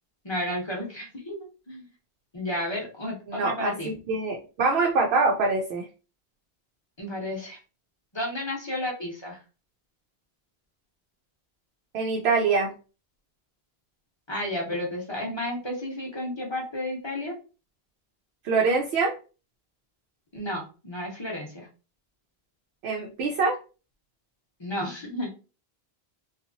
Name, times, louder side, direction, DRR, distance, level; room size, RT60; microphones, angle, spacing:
voice 1, 0.2-1.9 2.3-3.9 7.0-7.6 8.1-9.4 14.3-17.3 20.3-21.7 24.6-25.3, left 1 dB, 30° left, -1 dB, 0.7 m, -32 dB
voice 2, 3.3-5.9 11.9-12.7 18.4-19.1 22.8-23.6, right 4 dB, 90° right, 0 dB, 0.8 m, -24 dB
2.7 x 2.4 x 2.5 m, 0.34 s
omnidirectional pair, 1.0 m